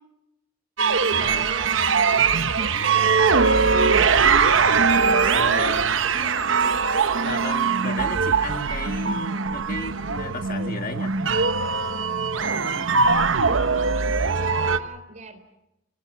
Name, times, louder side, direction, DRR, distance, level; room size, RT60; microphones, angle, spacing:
sound 1, 0.8-14.8, right 5 dB, 70° right, 1.0 m, -21 dB
voice 1, 1.2-3.9 5.8-6.4 12.4-15.4, right 2 dB, 40° right, 9 dB, 3.9 m, -40 dB
voice 2, 5.3-6.0 7.2-11.1, left 3 dB, 45° left, 7 dB, 1.7 m, -34 dB
29.0 x 19.0 x 7.4 m, 0.90 s
head